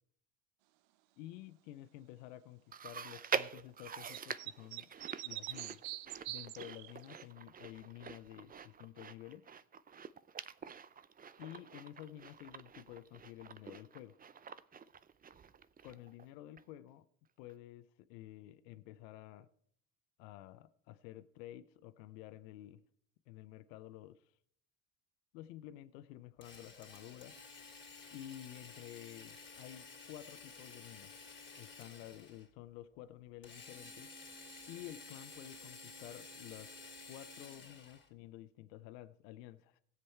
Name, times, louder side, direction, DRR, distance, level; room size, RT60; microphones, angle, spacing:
voice 1, 1.2-4.9 5.2-5.8 6.3-9.5 11.4-14.2 15.8-17.1 17.4-19.5 20.2-22.8 23.3-24.3 25.3-27.4 28.1-31.2 31.6-34.1 34.7-36.8 37.0-39.8, left 14 dB, 80° left, 0.8 m, -51 dB
Chewing mastication, 2.7-16.3 16.6-16.7 17.5-17.6, right 7 dB, 20° right, 0.4 m, -45 dB
sound 1, 4.1-7.2, right 16 dB, 65° right, 0.7 m, -44 dB
Drill, 26.4-32.5 33.4-38.1, left 4 dB, 20° left, 2.8 m, -53 dB
16.5 x 7.6 x 4.4 m
hypercardioid pair, 70°, 49 cm